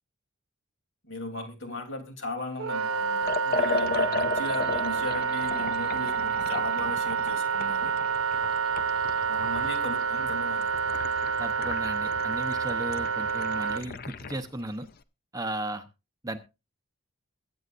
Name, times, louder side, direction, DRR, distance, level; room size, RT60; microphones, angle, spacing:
voice 1, 1.0-7.9 9.3-10.7, left 2 dB, 60° left, 4 dB, 3.0 m, -37 dB
Wind instrument woodwind instrument, 2.6-13.8, right 6 dB, 75° right, 0.7 m, -28 dB
Liquid, 3.2-14.4, left 3 dB, 45° left, 0.6 m, -35 dB
voice 2, 11.4-14.9 15.3-15.9 16.2-16.4, right 1 dB, 15° right, 8 dB, 0.8 m, -35 dB
22.5 x 8.6 x 2.5 m, 0.28 s
head